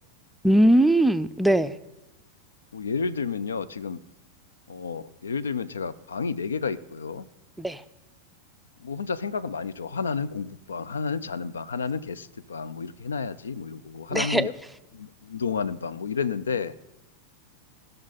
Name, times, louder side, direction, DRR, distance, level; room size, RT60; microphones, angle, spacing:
voice 1, 0.4-1.8 7.6-7.8 14.1-14.5, right 1 dB, 5° right, 12 dB, 0.4 m, -20 dB
voice 2, 2.7-4.0 4.7-7.3 8.8-14.5 14.9-16.7, left 5 dB, 70° left, 16 dB, 0.4 m, -31 dB
17.0 x 6.5 x 4.1 m, 0.97 s
figure-of-eight pair, 90°, 0 cm